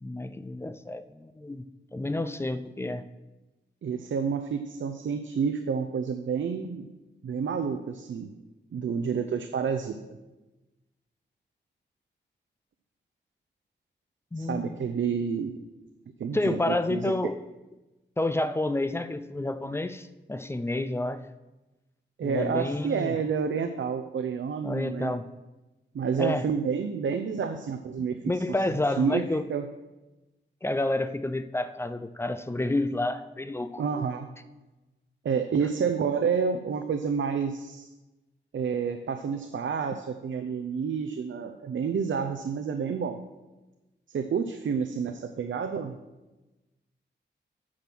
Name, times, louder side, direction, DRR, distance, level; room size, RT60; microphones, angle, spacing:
voice 1, 0.0-1.6 1.9-3.1 14.3-14.7 16.3-17.4 18.2-21.2 22.2-23.1 24.6-25.3 26.2-26.5 28.0-29.4 30.6-33.8, left 2 dB, 15° left, 11 dB, 0.4 m, -29 dB
voice 2, 3.8-6.9 7.2-8.3 8.7-10.0 14.4-15.5 16.2-17.1 22.2-25.1 25.9-28.2 29.0-29.7 33.8-34.3 35.2-37.9 38.5-43.2 44.1-46.0, right 6 dB, 80° right, 7 dB, 0.6 m, -29 dB
8.5 x 6.2 x 6.0 m, 1.1 s
wide cardioid pair, 175°, 19 cm